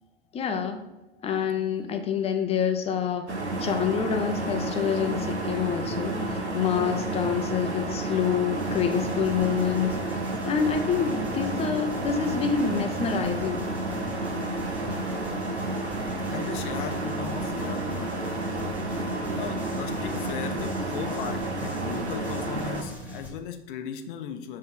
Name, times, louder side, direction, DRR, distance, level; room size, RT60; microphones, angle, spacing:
voice 1, 0.3-0.8 1.2-3.3 3.6-10.0 10.5-13.7, left 7 dB, 20° left, 5 dB, 0.7 m, -27 dB
sound 1, 3.3-22.8, right 2 dB, 90° right, 0.9 m, -31 dB
sound 2, 8.6-23.3, equal, 5° right, 1.2 m, -42 dB
voice 2, 16.3-18.2 19.3-24.6, left 8 dB, 50° left, 7 dB, 0.8 m, -37 dB
7.0 x 3.2 x 5.6 m, 0.99 s
figure-of-eight pair, 95°, 32 cm